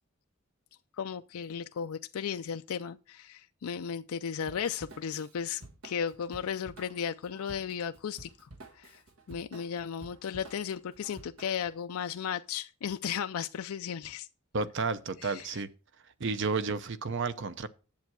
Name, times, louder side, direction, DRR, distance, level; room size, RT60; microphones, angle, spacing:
voice 1, 1.0-9.0 9.3-14.3 15.2-15.6, left 7 dB, 80° left, 0.4 m, -35 dB
Drum kit / Drum, 4.4-11.8, right 2 dB, 85° right, 1.7 m, -52 dB
voice 2, 14.5-15.7 16.2-17.7, right 4 dB, 55° right, 0.7 m, -31 dB
10.5 x 7.5 x 4.7 m
head